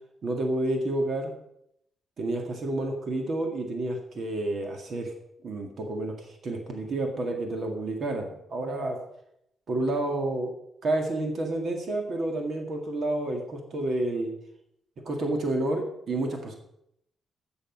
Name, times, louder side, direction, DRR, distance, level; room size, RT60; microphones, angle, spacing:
voice 1, 0.2-1.3 2.2-5.1 5.4-9.0 9.7-10.5 10.8-14.3 15.1-16.6, right 2 dB, 50° right, 3 dB, 1.9 m, -29 dB
13.0 x 7.0 x 5.4 m, 0.76 s
wide cardioid pair, 150°, 0 cm